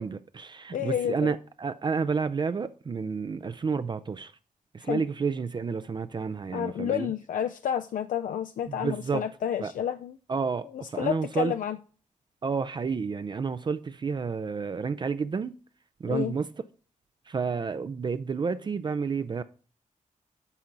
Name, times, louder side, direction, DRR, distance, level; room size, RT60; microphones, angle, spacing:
voice 1, 0.0-4.3 4.7-7.1 8.7-9.3 9.6-9.7 10.3-11.5 12.4-15.5 16.0-16.5 17.3-19.4, right 5 dB, 35° right, 0.4 m, -30 dB
voice 2, 0.7-1.3 4.8-5.0 6.5-10.2 10.7-11.8 16.1-16.3, left 9 dB, 75° left, 0.4 m, -30 dB
9.8 x 5.9 x 3.9 m
wide cardioid pair, 120°, 14 cm